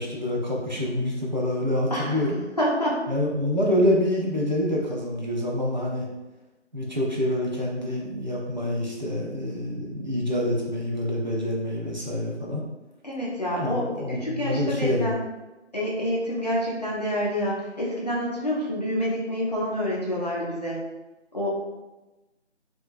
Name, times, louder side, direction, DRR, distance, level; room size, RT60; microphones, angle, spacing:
voice 1, 0.0-2.4 3.1-6.1 6.7-12.6 13.6-15.2, left 1 dB, 40° right, -3 dB, 0.5 m, -26 dB
voice 2, 1.9-2.3 2.6-3.0 13.0-15.2 15.7-20.8 21.3-21.5, equal, 35° left, -5 dB, 0.5 m, -27 dB
2.8 x 2.2 x 2.4 m, 1.1 s
figure-of-eight pair, 165°, 36 cm